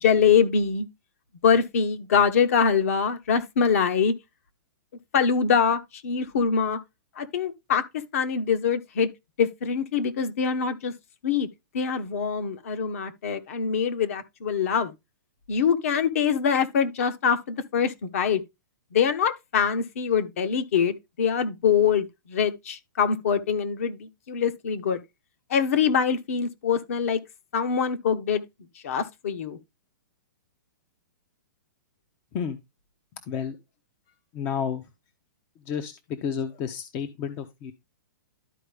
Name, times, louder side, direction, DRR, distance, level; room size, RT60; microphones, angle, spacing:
voice 1, 0.0-0.9 1.4-4.1 5.1-6.8 7.2-7.8 8.1-9.1 9.4-10.9 11.2-11.5 11.7-14.9 15.5-18.4 18.9-25.0 25.5-27.2 27.5-28.4 28.8-29.6, left 6 dB, 45° left, 1.1 m, -24 dB
voice 2, 34.3-34.8 35.7-35.9 36.2-37.7, left 7 dB, 20° left, 0.6 m, -30 dB
12.0 x 4.5 x 3.3 m
hypercardioid pair, 175°, 11 cm